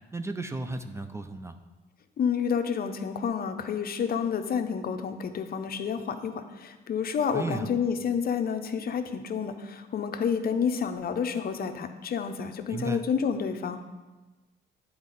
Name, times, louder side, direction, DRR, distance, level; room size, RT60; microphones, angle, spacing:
voice 1, 0.1-1.5 7.3-7.7 12.7-13.0, right 2 dB, 15° right, 8 dB, 0.4 m, -34 dB
voice 2, 2.2-13.8, left 7 dB, 50° left, 8 dB, 0.6 m, -29 dB
9.4 x 4.1 x 4.0 m, 1.2 s
cardioid pair, 90°, 20 cm